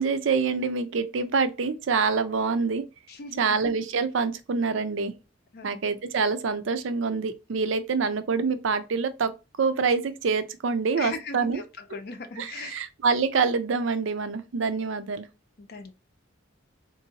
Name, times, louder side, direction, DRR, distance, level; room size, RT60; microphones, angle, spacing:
voice 1, 0.0-2.8 3.4-5.1 5.6-9.3 9.6-11.6 12.4-15.3, right 5 dB, 70° right, 0.5 m, -26 dB
voice 2, 3.1-3.4 5.5-5.8 11.0-11.6 11.9-12.8 15.7-15.9, left 4 dB, 55° left, 0.5 m, -38 dB
3.7 x 2.6 x 2.8 m
head